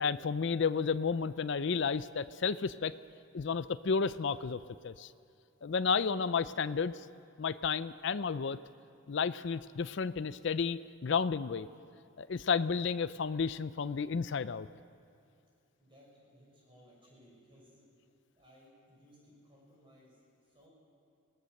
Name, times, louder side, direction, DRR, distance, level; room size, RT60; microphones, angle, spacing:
voice 1, 0.0-3.0 3.3-5.1 5.6-7.0 7.4-8.6 9.1-11.7 12.2-14.7, left 5 dB, 55° left, 14 dB, 0.4 m, -32 dB
voice 2, 15.8-17.9 18.3-20.7, equal, 25° right, -4 dB, 6.5 m, -61 dB
24.0 x 17.5 x 6.5 m, 2.6 s
head